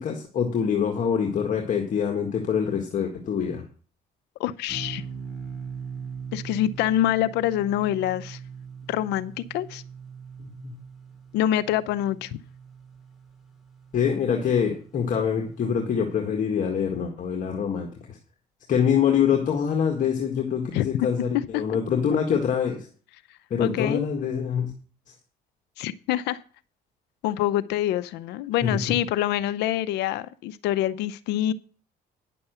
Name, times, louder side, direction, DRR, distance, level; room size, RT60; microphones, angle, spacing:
voice 1, 0.0-3.6 10.4-10.7 13.9-18.2 18.7-22.8 23.5-24.7 28.6-28.8, left 7 dB, 50° left, 2 dB, 1.8 m, -25 dB
voice 2, 4.4-5.0 6.3-8.4 8.9-9.8 11.3-12.4 20.7-20.9 21.3-21.6 23.6-24.1 25.8-26.4 27.2-31.5, left 12 dB, 85° left, 16 dB, 0.7 m, -25 dB
sound 1, 4.7-15.2, right 6 dB, ahead, 3.2 m, -41 dB
10.0 x 7.0 x 6.8 m, 0.42 s
cardioid pair, 110°, 17 cm